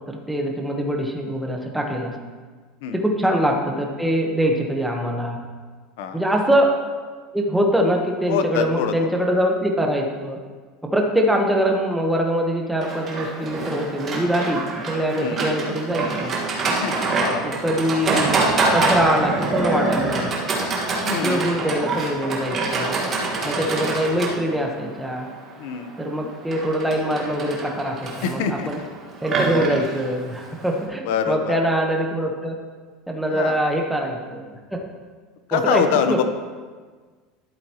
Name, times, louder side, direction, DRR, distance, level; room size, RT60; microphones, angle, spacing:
voice 1, 0.1-2.2 2.9-5.4 6.1-6.7 7.3-10.4 10.8-16.7 17.4-18.4 18.7-20.3 21.2-23.0 23.4-25.3 26.0-28.8 29.2-32.6 33.1-34.8 35.5-36.2, equal, 5° right, 1 dB, 1.0 m, -23 dB
voice 2, 8.3-8.9 15.1-15.5 16.8-17.6 21.0-21.4 25.6-25.9 28.2-28.7 31.0-31.6 33.3-33.6 35.5-36.2, left 7 dB, 80° left, 8 dB, 0.8 m, -24 dB
Livestock farm animals working animals, 12.8-30.8, right 3 dB, 30° right, 1.6 m, -26 dB
12.0 x 7.7 x 3.0 m, 1.5 s
supercardioid pair, 140°, 0 cm